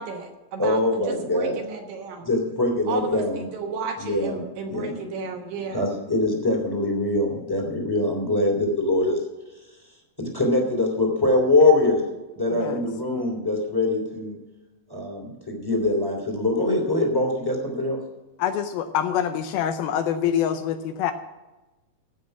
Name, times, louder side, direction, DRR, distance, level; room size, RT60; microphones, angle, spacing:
voice 1, 0.0-2.3 2.9-5.9, right 5 dB, 70° right, 3 dB, 2.7 m, -33 dB
voice 2, 0.6-1.6 2.2-3.4 4.0-4.4 4.7-5.0 5.7-9.2 10.2-12.0 12.3-14.4 14.9-18.0, left 2 dB, 5° left, 0 dB, 2.1 m, -23 dB
voice 3, 12.5-12.8 18.4-21.1, left 9 dB, 80° left, 8 dB, 2.3 m, -25 dB
15.0 x 6.1 x 8.0 m, 1.1 s
omnidirectional pair, 4.6 m